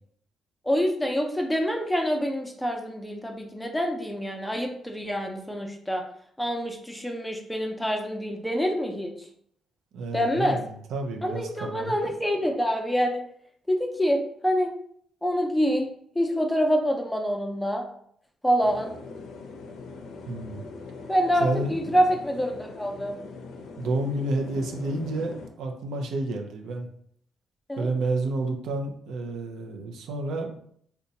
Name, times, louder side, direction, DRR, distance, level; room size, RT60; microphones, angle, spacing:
voice 1, 0.7-6.0 6.4-9.3 10.1-10.6 11.2-13.2 13.7-14.7 15.2-15.9 16.1-17.8 18.4-18.9 21.1-23.2 27.7-27.9, equal, 5° left, 2 dB, 0.5 m, -26 dB
voice 2, 9.9-11.9 20.3-20.7 21.4-22.0 23.8-26.9 27.8-30.6, right 2 dB, 80° right, 3 dB, 0.5 m, -30 dB
sound 1, 18.6-25.5, left 4 dB, 75° left, 0.4 m, -42 dB
2.7 x 2.2 x 3.9 m, 0.65 s
cardioid pair, 90°, 0 cm